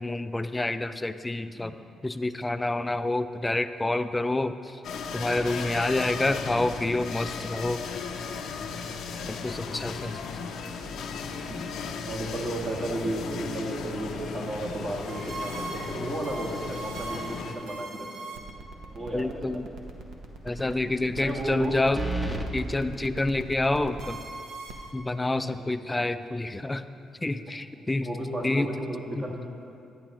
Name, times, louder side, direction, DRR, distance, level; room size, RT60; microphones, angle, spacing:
voice 1, 0.0-1.7 2.0-4.5 5.1-7.8 9.3-10.2 19.1-19.7 20.4-22.0 22.5-24.2 24.9-26.8 27.2-28.1 28.4-28.7 29.2-29.3, left 2 dB, 15° left, 11 dB, 0.3 m, -28 dB
sound 1, 4.8-17.5, left 5 dB, 75° left, 0.6 m, -36 dB
voice 2, 6.2-6.5 9.7-10.0 12.1-18.1 18.9-19.6 21.2-21.8 25.3-25.7 28.0-29.4, right 1 dB, 45° right, -3 dB, 1.7 m, -34 dB
sound 2, 15.1-24.9, right 3 dB, 75° right, 0.9 m, -40 dB
sound 3, 18.8-19.3 19.7-19.8 21.9-22.5, right 1 dB, 5° right, 0.7 m, -31 dB
10.0 x 9.4 x 3.0 m, 2.5 s
cardioid pair, 90°, 0 cm